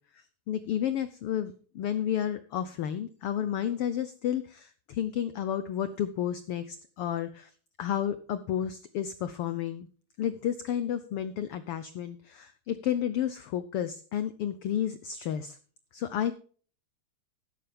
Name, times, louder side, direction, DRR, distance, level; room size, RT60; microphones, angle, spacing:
voice 1, 0.5-7.5 7.8-9.9 10.2-15.6 15.9-16.3, left 10 dB, 80° left, 13 dB, 1.3 m, -31 dB
13.0 x 11.5 x 3.4 m, 0.42 s
omnidirectional pair, 3.4 m